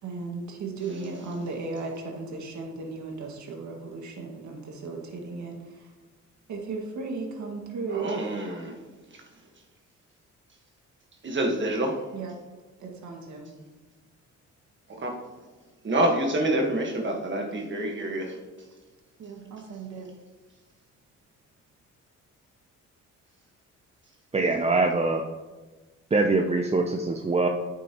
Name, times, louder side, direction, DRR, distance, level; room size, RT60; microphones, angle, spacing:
voice 1, 0.0-5.9 6.5-8.3 12.1-12.3 12.8-13.6 19.2-20.1, right 4 dB, 70° right, 1 dB, 1.9 m, -36 dB
voice 2, 7.9-8.8 9.1-9.2 11.2-12.0 14.9-15.1 15.8-18.4, right 1 dB, 40° right, 2 dB, 1.5 m, -27 dB
voice 3, 24.3-25.2 26.1-27.5, right 3 dB, 20° right, 4 dB, 0.6 m, -23 dB
9.4 x 8.3 x 3.0 m, 1.2 s
cardioid pair, 90°, 30 cm